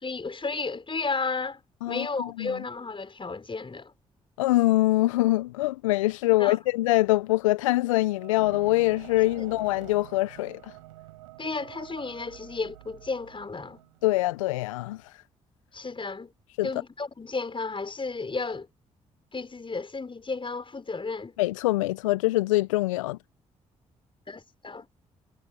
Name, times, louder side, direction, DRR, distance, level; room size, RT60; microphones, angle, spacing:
voice 1, 0.0-1.6 1.8-3.9 6.4-6.6 11.4-13.8 15.7-16.3 16.6-18.7 19.3-21.3 24.3-24.8, left 4 dB, 30° left, 6.4 m, -33 dB
voice 2, 1.8-2.5 4.4-10.6 14.0-15.0 16.6-16.7 21.4-23.2, left 18 dB, 80° left, 1.0 m, -24 dB
sound 1, 6.7-14.5, right 18 dB, 80° right, 5.0 m, -48 dB
figure-of-eight pair, 40°, 17 cm